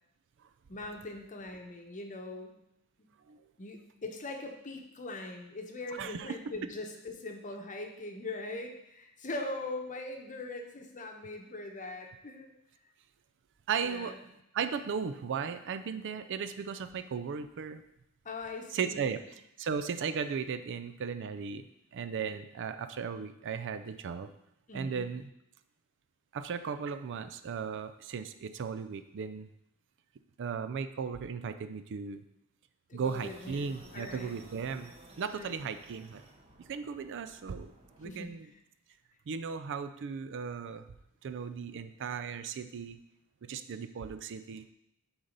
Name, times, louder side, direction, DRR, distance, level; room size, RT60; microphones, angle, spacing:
voice 1, 0.7-2.5 3.6-12.5 13.8-14.2 18.2-19.1 24.7-25.1 32.9-34.4 35.3-35.6 38.0-38.5, left 2 dB, 35° left, 3 dB, 0.9 m, -41 dB
voice 2, 5.9-6.3 13.7-14.1 14.5-17.8 18.7-21.6 21.9-24.3 24.7-25.2 26.3-29.5 30.4-32.2 32.9-34.9 35.2-36.2 36.7-37.7 38.0-38.5 39.3-40.8 41.2-43.0 43.5-44.7, right 6 dB, 55° right, 10 dB, 0.4 m, -36 dB
sound 1, 33.0-38.1, right 2 dB, 25° right, 0.9 m, -55 dB
7.0 x 4.0 x 5.2 m, 0.79 s
head